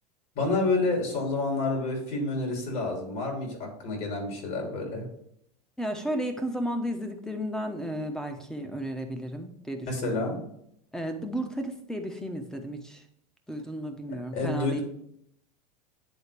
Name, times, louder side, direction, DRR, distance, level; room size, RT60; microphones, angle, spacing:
voice 1, 0.3-5.1 9.9-10.4 14.3-14.8, left 2 dB, 55° left, 1 dB, 3.0 m, -29 dB
voice 2, 5.8-10.4 10.9-13.0 13.5-14.8, equal, 5° left, 6 dB, 1.0 m, -33 dB
9.9 x 4.0 x 3.4 m, 0.72 s
hypercardioid pair, 95°, 20 cm